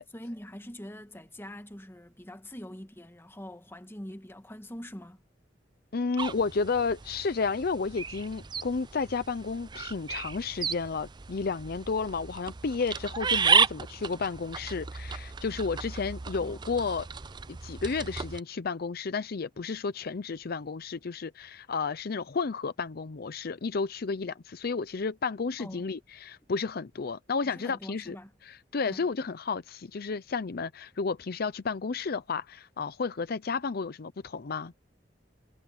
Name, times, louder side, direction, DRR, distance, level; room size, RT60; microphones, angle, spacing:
voice 1, 0.1-5.2 16.4-16.6 25.6-25.9 27.4-28.3 28.9-29.1, equal, 15° left, 1.5 m, -44 dB
voice 2, 5.9-17.1 17.5-28.2 28.4-34.7, left 4 dB, 55° left, 0.6 m, -32 dB
sound 1, 6.2-18.4, right 6 dB, 25° right, 0.5 m, -33 dB
head